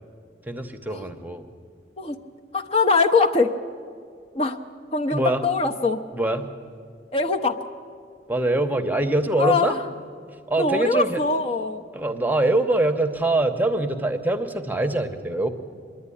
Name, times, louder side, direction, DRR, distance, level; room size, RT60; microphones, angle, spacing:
voice 1, 0.5-1.5 5.1-5.4 6.1-6.5 8.3-9.7 10.5-11.2 11.9-15.5, right 2 dB, 10° right, 7 dB, 0.9 m, -23 dB
voice 2, 2.5-3.5 4.3-4.6 4.9-6.0 7.1-7.6 9.4-9.8 10.6-11.8, left 4 dB, 35° left, 5 dB, 0.7 m, -22 dB
25.0 x 10.5 x 9.9 m, 2.2 s
head